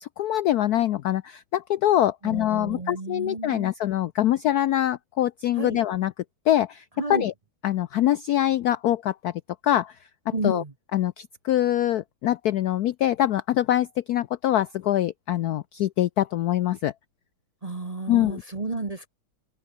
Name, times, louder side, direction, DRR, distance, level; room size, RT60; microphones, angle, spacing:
voice 1, 0.0-6.1 6.5-6.8 7.1-7.3 7.6-9.3 9.6-10.0 10.4-10.6 10.9-16.9 18.1-18.4, left 12 dB, 90° left, 0.8 m, -24 dB
voice 2, 2.2-3.7 5.6-5.8 7.0-7.3 10.3-10.7 17.6-19.1, right 3 dB, 25° right, 0.8 m, -32 dB
omnidirectional pair, 2.3 m